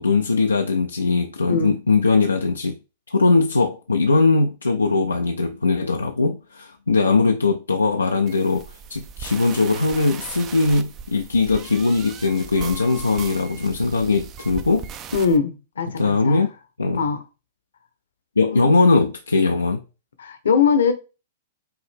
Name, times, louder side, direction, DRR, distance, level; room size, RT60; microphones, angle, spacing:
voice 1, 0.0-2.8 3.1-14.9 16.0-16.5 16.8-17.1 18.4-19.8, left 3 dB, 90° left, 0.5 m, -20 dB
voice 2, 1.5-1.8 15.1-16.4 16.9-17.2 18.5-18.7 20.2-20.9, left 6 dB, 75° left, 0.9 m, -21 dB
sound 1, 8.3-15.4, right 8 dB, 30° right, 0.5 m, -38 dB
5.6 x 2.7 x 3.5 m
hypercardioid pair, 105°, 0 cm